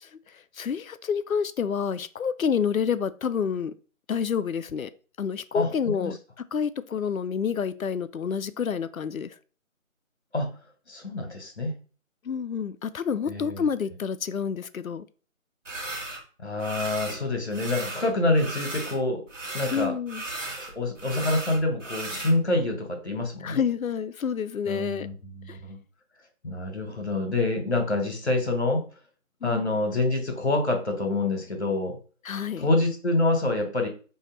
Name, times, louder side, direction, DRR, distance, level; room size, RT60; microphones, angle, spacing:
voice 1, 0.0-3.7 4.1-4.9 5.2-9.4 12.2-15.1 19.7-20.2 23.4-25.1 25.5-25.6 29.4-29.7 32.2-32.7, left 7 dB, 90° left, 13 dB, 0.5 m, -29 dB
voice 2, 10.9-11.7 13.3-13.6 16.4-19.2 19.5-19.9 20.6-23.6 24.6-25.8 26.4-28.8 29.4-32.0 32.6-33.9, left 2 dB, 55° left, 4 dB, 1.2 m, -26 dB
sound 1, 15.6-16.2 16.6-17.2 17.5-19.0 19.3-22.3, right 2 dB, 65° right, 1.2 m, -36 dB
4.2 x 2.8 x 3.7 m, 0.38 s
figure-of-eight pair, 165°, 41 cm